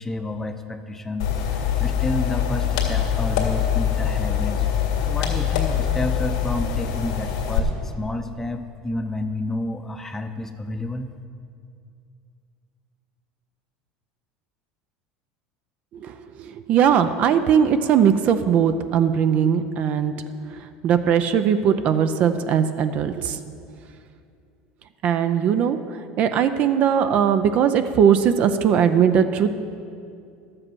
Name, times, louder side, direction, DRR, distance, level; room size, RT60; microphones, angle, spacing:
voice 1, 0.0-1.3 1.8-4.6 5.1-11.1, left 2 dB, 10° left, 7 dB, 0.7 m, -30 dB
sound 1, 1.2-7.6, left 8 dB, 85° left, 2.0 m, -24 dB
voice 2, 16.7-20.1 20.8-23.4 25.0-25.8 26.2-29.5, right 8 dB, 50° right, 10 dB, 0.6 m, -19 dB
12.0 x 7.7 x 6.2 m, 2.4 s
supercardioid pair, 115°, 3 cm